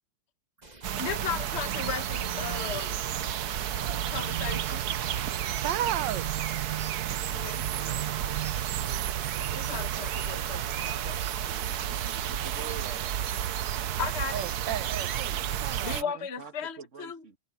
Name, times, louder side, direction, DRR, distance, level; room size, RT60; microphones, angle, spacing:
sound 1, 0.6-6.6, right 2 dB, 25° right, 2.2 m, -52 dB
sound 2, 0.8-16.0, right 10 dB, 65° right, 1.3 m, -31 dB
voice 1, 1.0-2.9 4.1-4.8 7.3-7.6 9.5-11.6 14.0-14.5 15.8-17.2, left 7 dB, 40° left, 1.5 m, -36 dB
voice 2, 3.8-4.2 5.6-6.3 7.1-7.2 8.8-9.3 14.3-16.1, right 11 dB, 90° right, 1.4 m, -35 dB
voice 3, 7.3-8.5 11.5-13.0 16.4-17.4, right 6 dB, 40° right, 2.2 m, -46 dB
omnidirectional pair, 1.9 m